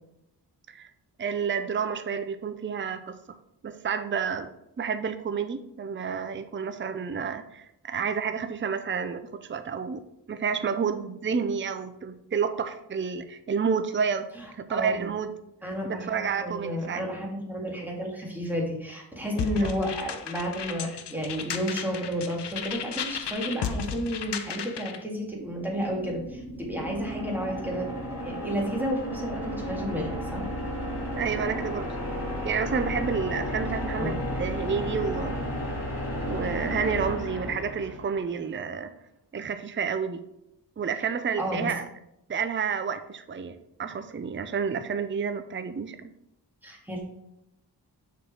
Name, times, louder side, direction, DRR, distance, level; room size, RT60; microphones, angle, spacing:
voice 1, 1.2-3.4 3.6-4.5 4.8-10.0 10.3-14.3 14.6-15.3 15.8-17.0 19.6-19.7 31.1-32.0 32.4-35.4 36.3-38.9 39.3-40.2 40.8-41.9 42.3-46.1, right 6 dB, 30° right, 10 dB, 0.5 m, -30 dB
voice 2, 14.4-15.1 15.6-30.5 33.9-34.2 41.4-41.7 46.6-47.0, equal, 5° right, -2 dB, 2.0 m, -32 dB
sound 1, 19.4-25.0, left 7 dB, 80° left, 0.7 m, -34 dB
sound 2, 25.3-38.4, equal, 60° left, 2.2 m, -33 dB
6.3 x 4.7 x 4.8 m, 0.83 s
wide cardioid pair, 105°, 41 cm